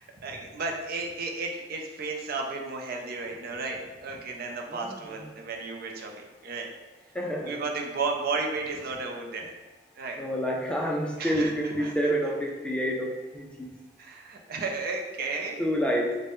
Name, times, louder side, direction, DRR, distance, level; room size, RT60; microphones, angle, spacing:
voice 1, 0.0-6.7 7.4-9.5 10.0-10.2 11.2-12.1 14.0-15.6, right 3 dB, 55° right, 2 dB, 0.5 m, -33 dB
voice 2, 4.7-5.3 7.1-7.5 10.2-13.7 15.6-16.2, equal, 5° left, -2 dB, 0.3 m, -28 dB
3.8 x 2.1 x 3.5 m, 1.1 s
head